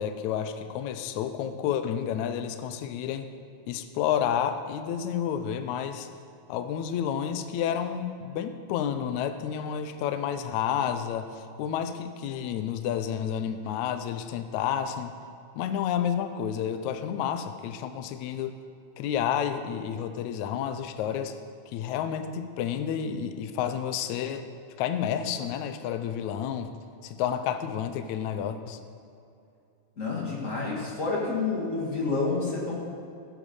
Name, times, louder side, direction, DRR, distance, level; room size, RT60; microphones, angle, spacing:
voice 1, 0.0-3.3 3.7-6.1 6.5-15.1 15.5-18.5 19.0-21.3 21.7-24.5 24.8-26.7 27.0-28.8, left 9 dB, 80° left, 9 dB, 1.7 m, -30 dB
voice 2, 30.0-32.8, left 3 dB, 30° left, -3 dB, 1.5 m, -29 dB
14.5 x 8.6 x 5.4 m, 2.6 s
omnidirectional pair, 4.1 m